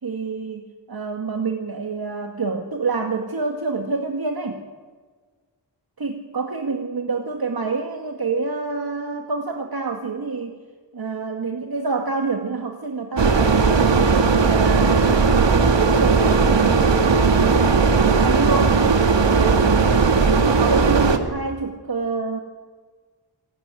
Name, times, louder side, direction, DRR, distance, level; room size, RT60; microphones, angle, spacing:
voice 1, 0.0-4.6 6.0-10.6 10.9-14.1 14.5-17.1 17.4-18.8 19.1-20.0 20.3-22.4, right 4 dB, 55° right, 3 dB, 2.1 m, -27 dB
sound 1, 13.2-21.2, right 4 dB, 75° right, 2.2 m, -17 dB
27.5 x 17.5 x 9.8 m, 1.5 s
wide cardioid pair, 105°, 44 cm